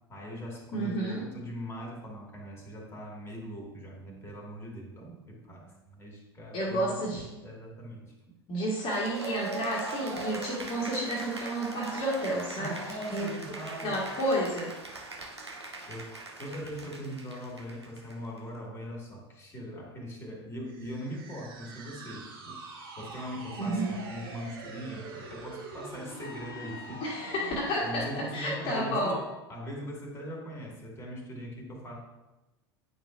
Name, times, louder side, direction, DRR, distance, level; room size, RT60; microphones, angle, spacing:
voice 1, 0.1-8.1 12.6-14.0 15.9-16.1 16.4-22.6 23.0-27.0 27.8-29.2 29.5-32.0, equal, 20° left, -1 dB, 2.0 m, -41 dB
voice 2, 0.7-1.3 6.5-7.2 8.5-13.3 13.8-14.7 23.6-23.9 27.0-29.2, right 1 dB, 40° left, -4 dB, 1.6 m, -31 dB
Cheering / Applause, 8.8-18.4, right 3 dB, 85° right, 0.8 m, -41 dB
sound 1, 20.7-28.1, right 3 dB, 60° right, 1.4 m, -45 dB
sound 2, 26.2-29.5, left 5 dB, 55° left, 1.6 m, -48 dB
9.2 x 5.1 x 2.5 m, 1.0 s
figure-of-eight pair, 80°, 14 cm